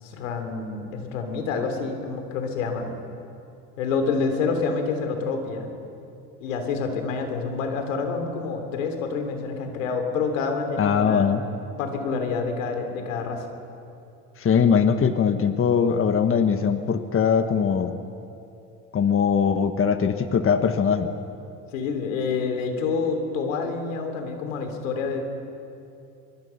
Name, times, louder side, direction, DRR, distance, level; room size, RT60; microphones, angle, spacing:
voice 1, 0.0-2.9 3.8-5.7 6.4-11.3 11.8-13.5 21.7-25.2, left 4 dB, 90° left, 5 dB, 3.3 m, -27 dB
voice 2, 10.8-11.4 14.4-17.9 18.9-21.1, left 6 dB, 35° left, 9 dB, 1.5 m, -21 dB
23.5 x 23.0 x 5.8 m, 2.7 s
supercardioid pair, 80°, 38 cm